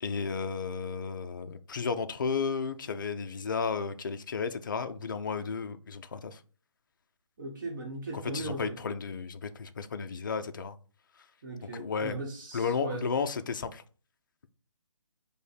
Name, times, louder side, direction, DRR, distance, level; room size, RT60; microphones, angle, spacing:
voice 1, 0.0-6.4 8.1-10.8 11.7-12.2 12.5-13.8, left 5 dB, 40° left, 0.3 m, -33 dB
voice 2, 7.4-8.8 11.4-13.0, right 2 dB, 35° right, 1.0 m, -38 dB
5.1 x 2.1 x 4.8 m
hypercardioid pair, 165°, 17 cm